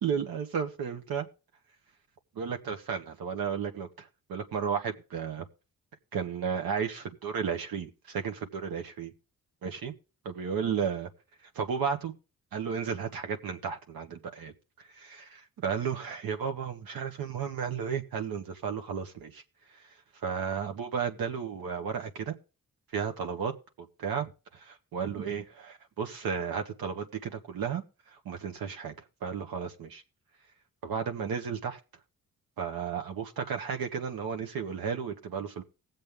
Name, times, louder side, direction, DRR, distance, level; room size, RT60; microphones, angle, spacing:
voice 1, 0.0-1.3 2.3-5.4 6.1-9.1 9.6-9.9 10.2-11.1 11.5-12.1 12.5-14.5 15.0-19.4 20.2-22.3 22.9-24.3 24.6-27.8 28.2-28.9 29.2-30.0 30.8-31.8 32.6-35.6, right 6 dB, 80° right, 5 dB, 1.5 m, -33 dB
18.5 x 7.7 x 3.6 m, 0.33 s
cardioid pair, 60°, 35 cm